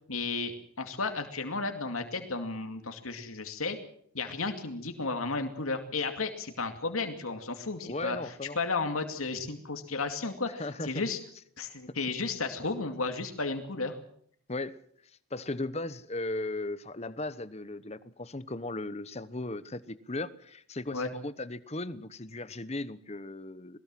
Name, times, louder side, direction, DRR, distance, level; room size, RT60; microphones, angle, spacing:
voice 1, 0.1-0.5 0.8-3.8 4.1-8.2 8.6-11.2 11.6-14.0 20.9-21.1, left 3 dB, 90° left, 2.5 m, -33 dB
voice 2, 7.8-8.6 10.5-11.0 11.9-12.0 14.5-14.8 15.3-23.8, left 2 dB, 30° left, 1.0 m, -37 dB
21.5 x 20.0 x 7.6 m
head